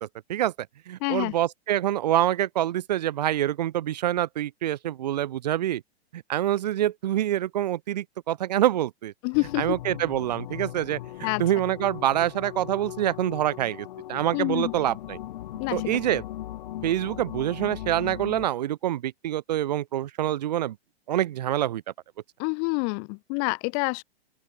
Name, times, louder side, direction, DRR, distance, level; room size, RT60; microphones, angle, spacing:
voice 1, 0.0-5.8 6.1-9.1 9.6-15.2 15.7-16.2 16.8-20.8 21.1-21.8, right 12 dB, 40° right, 0.4 m, -26 dB
voice 2, 1.0-1.3 9.2-9.8 11.2-11.4 14.3-14.7 15.6-15.8 22.4-24.0, left 40 dB or more, 25° left, 0.7 m, -27 dB
sound 1, 9.3-18.5, left 13 dB, 45° left, 1.9 m, -38 dB
open air
figure-of-eight pair, 110°, 32 cm